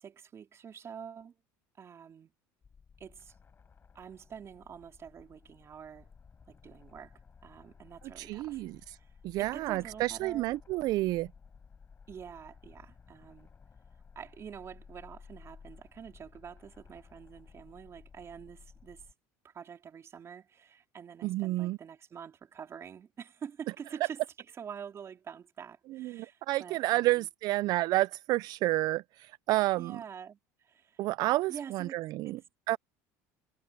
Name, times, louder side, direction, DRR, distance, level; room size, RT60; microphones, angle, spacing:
voice 1, 0.0-1.3 1.8-2.3 3.0-3.3 3.9-6.1 6.5-8.6 8.9-9.1 9.4-10.5 12.1-13.5 14.2-19.1 19.4-24.2 24.6-27.3 29.8-31.0 31.5-32.0 32.2-32.3, right 7 dB, 35° right, 4.1 m, -47 dB
sound 1, 2.6-19.1, left 5 dB, 30° left, 7.9 m, -56 dB
voice 2, 8.2-9.0 9.2-11.3 21.2-21.8 25.9-30.0 31.0-32.4 32.7-32.8, right 18 dB, 60° right, 0.4 m, -30 dB
supercardioid pair, 100°, 8 cm